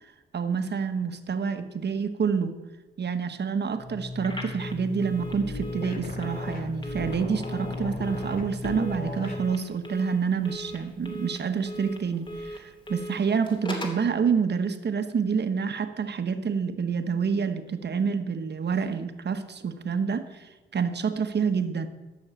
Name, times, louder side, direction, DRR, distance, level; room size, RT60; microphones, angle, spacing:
voice 1, 0.3-2.6 3.0-21.9, right 6 dB, 55° right, 8 dB, 1.2 m, -28 dB
sound 1, 3.7-9.5, left 2 dB, 45° left, 2.5 m, -35 dB
Telephone, 4.2-14.1, equal, 25° left, 2.9 m, -40 dB
13.0 x 6.4 x 7.6 m, 1.1 s
cardioid pair, 65°, 21 cm